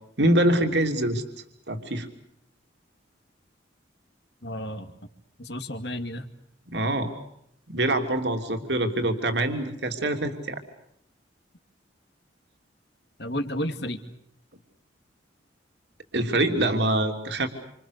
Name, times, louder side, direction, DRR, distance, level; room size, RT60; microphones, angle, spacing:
voice 1, 0.2-1.2 1.7-2.1 6.7-7.1 7.7-10.6 16.1-17.5, right 1 dB, 65° right, 4 dB, 3.2 m, -24 dB
voice 2, 4.4-4.9 5.4-6.3 13.2-14.0, equal, 60° left, 7 dB, 2.5 m, -32 dB
28.5 x 27.0 x 6.7 m, 0.73 s
head